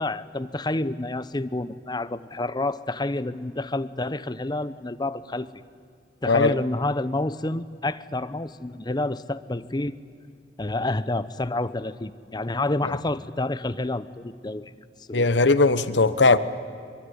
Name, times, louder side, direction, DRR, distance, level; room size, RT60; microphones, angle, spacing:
voice 1, 0.0-5.5 6.2-9.9 10.6-14.6 15.1-15.3, left 2 dB, 25° left, 14 dB, 0.8 m, -29 dB
voice 2, 15.1-16.4, left 3 dB, 85° left, 13 dB, 1.2 m, -19 dB
24.5 x 23.5 x 9.7 m, 2.3 s
head